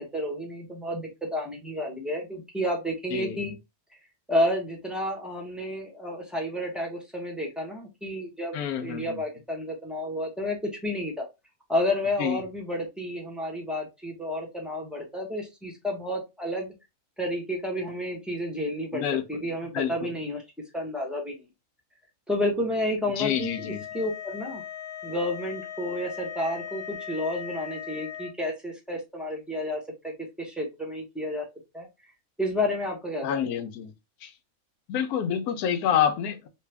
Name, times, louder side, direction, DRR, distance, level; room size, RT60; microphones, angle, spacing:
voice 1, 0.0-3.5 4.3-11.3 11.7-16.7 17.2-20.4 20.7-21.5 22.3-24.6 25.0-31.5 31.7-31.9 32.4-33.6, left 1 dB, ahead, 0.7 m, -31 dB
voice 2, 3.1-3.5 8.5-9.2 12.2-12.4 18.9-19.4 19.7-20.1 23.2-23.8 33.2-33.9 34.2-34.3 34.9-36.5, left 9 dB, 80° left, 1.1 m, -28 dB
sound 1, 23.2-28.3, left 9 dB, 55° left, 0.7 m, -39 dB
3.2 x 2.3 x 3.3 m
omnidirectional pair, 1.6 m